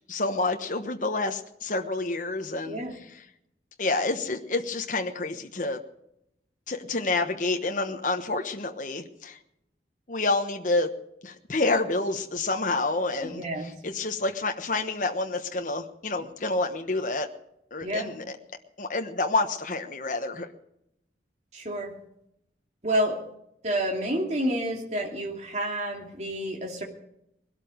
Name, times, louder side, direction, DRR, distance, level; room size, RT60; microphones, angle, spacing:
voice 1, 0.1-2.8 3.8-5.8 6.7-9.4 10.1-10.9 11.2-17.3 17.7-18.4 18.8-20.5, left 2 dB, 45° left, 5 dB, 1.2 m, -28 dB
voice 2, 13.2-13.7 17.8-18.1 21.5-21.9 22.8-23.2 23.6-26.8, right 1 dB, 40° right, 1 dB, 2.7 m, -29 dB
20.5 x 12.5 x 5.1 m, 0.78 s
head